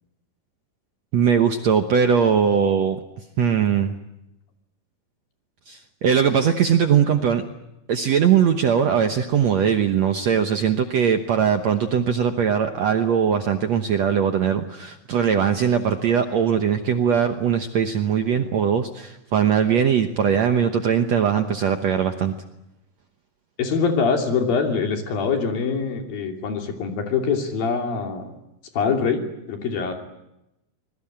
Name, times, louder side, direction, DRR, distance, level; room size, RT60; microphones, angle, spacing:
voice 1, 1.1-3.0 3.4-3.9 5.7-7.4 7.9-22.3, right 7 dB, 75° right, 6 dB, 1.6 m, -20 dB
voice 2, 23.6-28.3 28.7-29.9, left 5 dB, 65° left, 3 dB, 4.5 m, -24 dB
25.0 x 21.5 x 8.8 m, 0.89 s
omnidirectional pair, 4.7 m